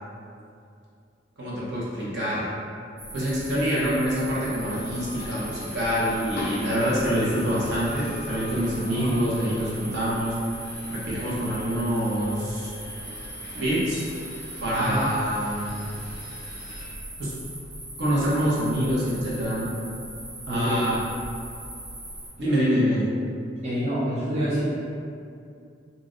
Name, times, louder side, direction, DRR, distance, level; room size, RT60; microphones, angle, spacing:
voice 1, 1.4-2.5 3.1-10.3 10.9-12.7 13.5-14.0 14.6-15.8 17.2-17.3 18.0-19.7 20.5-21.0 22.4-23.1, equal, 65° right, -8 dB, 0.8 m, -26 dB
sound 1, 3.0-22.3, right 1 dB, 80° right, 1.1 m, -39 dB
sound 2, 4.7-16.9, left 1 dB, 60° left, 0.5 m, -41 dB
voice 2, 20.5-20.8 23.6-24.6, equal, 35° right, -9 dB, 0.5 m, -27 dB
2.6 x 2.0 x 3.6 m, 2.4 s
head